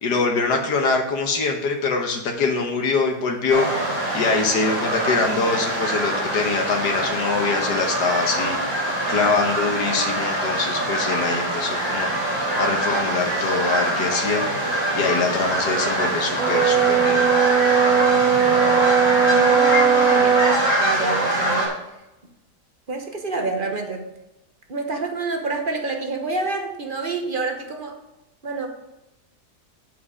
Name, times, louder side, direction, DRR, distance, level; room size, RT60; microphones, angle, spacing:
voice 1, 0.0-8.6 9.1-12.1 12.6-14.4 14.9-17.2, left 4 dB, 85° left, 2 dB, 1.7 m, -24 dB
sound 1, 3.5-21.7, right 1 dB, 30° left, 3.5 m, -24 dB
Brass instrument, 16.4-20.7, right 8 dB, 65° right, 1.1 m, -19 dB
voice 2, 19.2-20.4 20.8-21.8 22.9-24.0 24.7-28.0 28.4-28.7, right 3 dB, 35° right, 4 dB, 1.1 m, -28 dB
8.2 x 7.4 x 4.9 m, 0.96 s
omnidirectional pair, 1.8 m